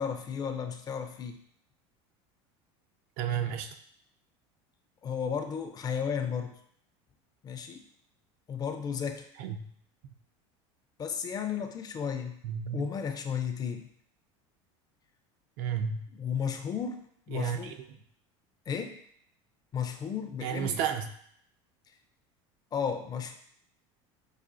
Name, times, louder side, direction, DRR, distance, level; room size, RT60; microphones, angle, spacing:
voice 1, 0.0-1.4 5.0-6.6 7.4-7.8 8.5-9.3 11.0-12.4 12.7-13.9 16.1-17.8 18.7-19.0 19.7-20.8 22.7-23.4, left 7 dB, 30° left, 7 dB, 0.4 m, -34 dB
voice 2, 3.2-3.7 9.4-9.6 12.4-12.9 15.6-16.0 17.3-17.7 20.4-21.1, right 8 dB, 70° right, 7 dB, 0.5 m, -31 dB
4.9 x 2.4 x 2.5 m, 0.66 s
supercardioid pair, 115°, 14 cm